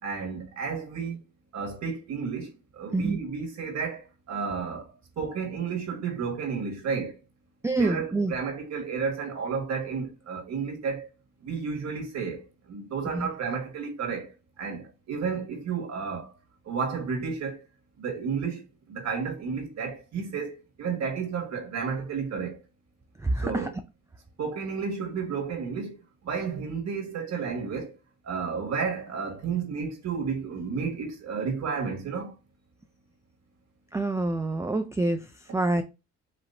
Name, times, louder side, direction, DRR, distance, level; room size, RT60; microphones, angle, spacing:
voice 1, 0.0-1.2 1.5-7.1 7.7-11.1 11.4-14.3 14.6-16.3 16.6-17.6 18.0-18.6 18.9-22.6 23.4-23.7 24.4-27.9 28.2-32.3, right 5 dB, 65° right, 1.8 m, -32 dB
voice 2, 7.6-8.3 13.1-13.3 23.2-23.7 33.9-35.8, right 2 dB, 10° right, 0.3 m, -27 dB
5.0 x 3.0 x 2.7 m
cardioid pair, 90°, 30 cm